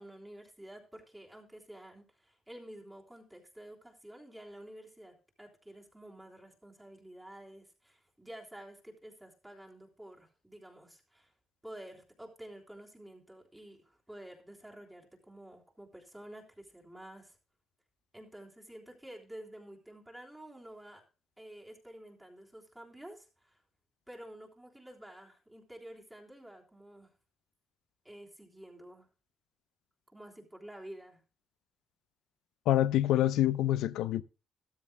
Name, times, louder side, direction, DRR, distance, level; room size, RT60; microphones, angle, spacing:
voice 1, 0.0-11.3 11.6-17.4 18.1-21.0 21.4-23.6 24.1-27.1 28.0-29.1 30.1-31.2, right 1 dB, 10° right, 3.4 m, -50 dB
voice 2, 32.7-34.2, left 13 dB, 90° left, 0.6 m, -26 dB
14.0 x 12.5 x 2.2 m
cardioid pair, 90°, 0 cm